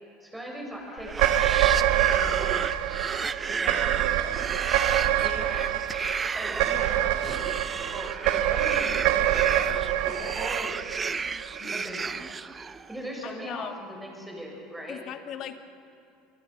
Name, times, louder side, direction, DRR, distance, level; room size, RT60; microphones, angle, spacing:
voice 1, 0.2-2.7 3.5-4.5 5.2-5.7 6.4-10.7 11.7-12.4 12.9-15.0, right 1 dB, 5° right, 0 dB, 7.4 m, -40 dB
voice 2, 0.9-1.4 5.1-5.5 11.6-12.0 13.2-13.7 14.9-15.6, left 10 dB, 55° left, 7 dB, 1.7 m, -40 dB
sound 1, 0.9-13.0, right 5 dB, 25° right, 0.7 m, -33 dB
sound 2, 1.1-11.6, right 12 dB, 70° right, 1.0 m, -26 dB
26.0 x 21.0 x 6.6 m, 2.5 s
supercardioid pair, 100°, 0 cm